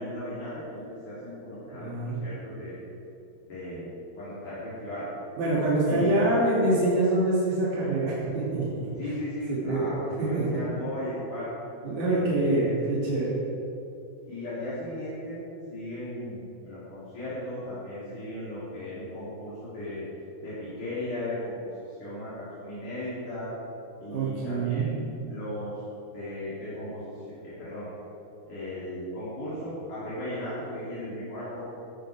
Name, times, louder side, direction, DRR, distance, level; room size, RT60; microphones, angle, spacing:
voice 1, 0.0-2.8 3.5-3.9 4.2-5.1 5.9-6.3 9.0-11.5 12.0-12.7 14.3-15.4 15.7-20.1 20.4-23.5 24.0-25.8 26.1-27.9 28.5-31.6, left 1 dB, 60° left, -13 dB, 5.4 m, -36 dB
voice 2, 1.7-2.2 5.4-8.7 9.5-9.9 10.3-10.5 11.8-13.4 24.0-24.9, right 2 dB, 60° right, -8 dB, 4.6 m, -25 dB
15.5 x 15.0 x 3.8 m, 2.8 s
omnidirectional pair, 4.0 m